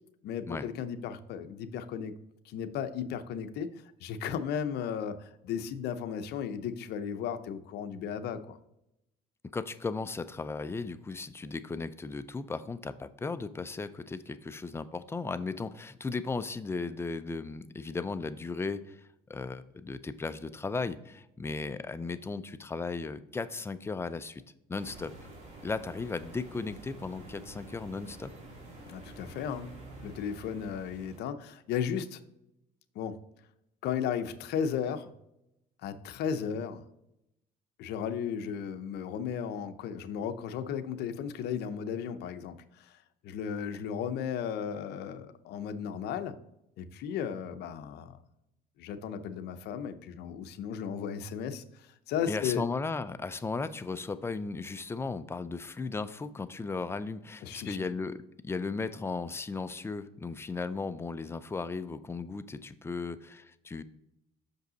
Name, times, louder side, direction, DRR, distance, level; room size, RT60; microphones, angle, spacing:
voice 1, 0.2-2.1 2.5-3.7 4.0-8.6 28.9-32.2 33.0-33.2 33.8-35.1 35.8-36.8 37.8-43.0 43.2-46.3 46.8-48.2 48.8-52.6 57.4-57.8, left 8 dB, 75° left, 10 dB, 0.6 m, -35 dB
voice 2, 9.5-19.0 19.3-24.4 24.7-25.1 25.6-28.3 43.7-43.8 52.3-63.8, left 4 dB, 15° left, 13 dB, 0.4 m, -36 dB
sound 1, 24.8-31.2, right 2 dB, 45° right, 2.6 m, -49 dB
6.2 x 5.3 x 3.9 m, 0.83 s
cardioid pair, 110°, 17 cm